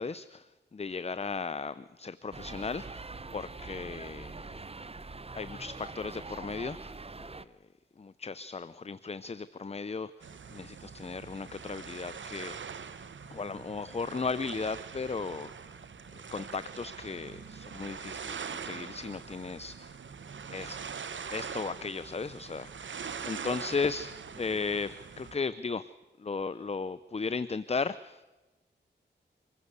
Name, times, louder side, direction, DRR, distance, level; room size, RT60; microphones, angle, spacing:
voice 1, 0.0-3.0 3.3-4.6 5.3-7.4 8.0-12.6 13.3-15.5 16.3-19.9 20.5-20.8 21.3-22.9 23.2-25.9 26.2-28.3, left 4 dB, 30° left, 16 dB, 0.6 m, -36 dB
sound 1, 2.3-7.4, right 3 dB, 30° right, 0.8 m, -43 dB
sound 2, 10.2-25.4, right 6 dB, 80° right, 1.2 m, -43 dB
24.5 x 15.5 x 8.1 m, 1.1 s
cardioid pair, 55°, 20 cm